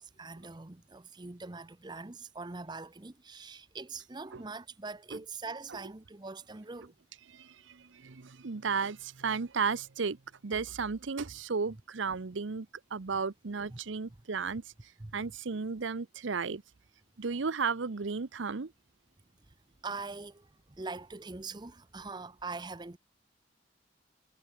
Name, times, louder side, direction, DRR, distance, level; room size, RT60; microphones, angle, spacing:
voice 1, 0.0-6.9 13.7-13.8 15.0-15.1 19.5-19.6 19.8-23.0, right 3 dB, 20° right, 0.7 m, -43 dB
voice 2, 7.3-10.2 10.4-14.6 15.1-16.6 17.2-18.7, right 5 dB, 75° right, 0.8 m, -34 dB
head